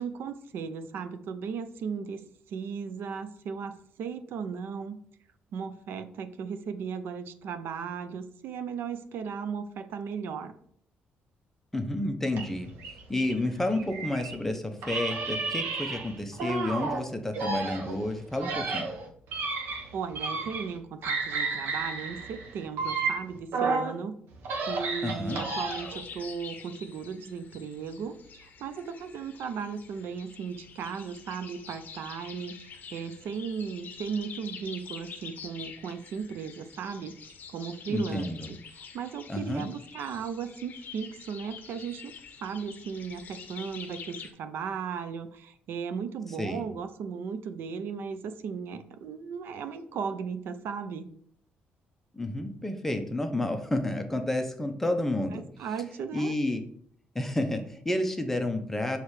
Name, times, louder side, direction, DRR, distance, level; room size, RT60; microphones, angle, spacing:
voice 1, 0.0-2.2 2.5-5.0 5.5-10.5 19.7-24.1 24.7-37.2 37.5-42.1 42.4-51.1 55.3-56.3, right 6 dB, 70° right, 10 dB, 0.5 m, -36 dB
voice 2, 11.7-12.7 13.1-18.9 25.0-25.4 37.9-38.5 39.3-39.7 46.4-46.6 52.1-55.4 56.1-56.6 57.1-59.0, left 1 dB, 10° left, 5 dB, 0.7 m, -30 dB
sound 1, 12.3-14.4 14.8-17.0 17.3-20.8 21.0-23.9 24.3-26.0, right 4 dB, 85° right, 1.2 m, -32 dB
sound 2, 25.3-44.3, left 6 dB, 50° left, 0.7 m, -46 dB
6.6 x 3.2 x 4.7 m, 0.63 s
cardioid pair, 145°, 4 cm